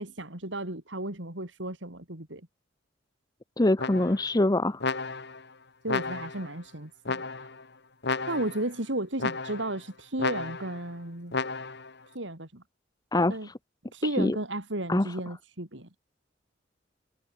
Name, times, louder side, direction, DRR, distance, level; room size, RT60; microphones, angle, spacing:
voice 1, 0.0-2.4 5.8-7.2 8.3-11.4 12.1-12.6 13.3-13.5 13.9-15.9, right 1 dB, 65° right, 4.1 m, -34 dB
voice 2, 3.6-4.8 13.1-13.5 14.0-14.4 14.9-15.1, left 1 dB, 20° left, 0.8 m, -24 dB
sound 1, 3.8-4.3 4.8-5.4 5.9-6.5 7.0-7.6 8.0-8.7 9.2-9.8 10.2-10.8 11.3-11.9, left 3 dB, 60° left, 3.2 m, -33 dB
head